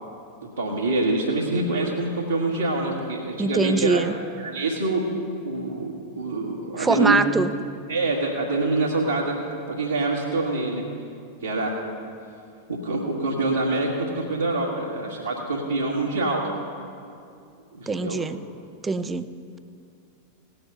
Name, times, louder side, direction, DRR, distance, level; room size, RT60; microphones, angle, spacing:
voice 1, 0.6-4.0 4.3-5.1 5.4-7.2 7.9-9.4 9.7-10.8 11.4-11.8 12.7-16.4 17.7-18.2, right 2 dB, 80° right, -6 dB, 1.6 m, -25 dB
voice 2, 3.4-4.1 6.8-7.5 17.9-18.4 18.8-19.3, right 4 dB, 15° right, 12 dB, 0.5 m, -23 dB
17.5 x 7.8 x 5.4 m, 2.5 s
figure-of-eight pair, 90°, 0 cm